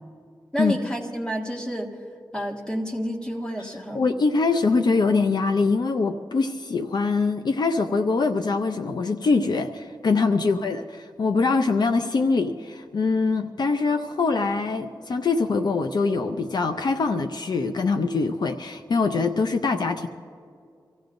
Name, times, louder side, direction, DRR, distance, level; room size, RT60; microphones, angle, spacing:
voice 1, 0.5-1.9 2.3-4.0, equal, 10° left, 1 dB, 1.8 m, -29 dB
voice 2, 3.9-20.1, left 4 dB, 65° left, 7 dB, 0.6 m, -23 dB
25.5 x 16.0 x 2.6 m, 2.3 s
wide cardioid pair, 105°, 8 cm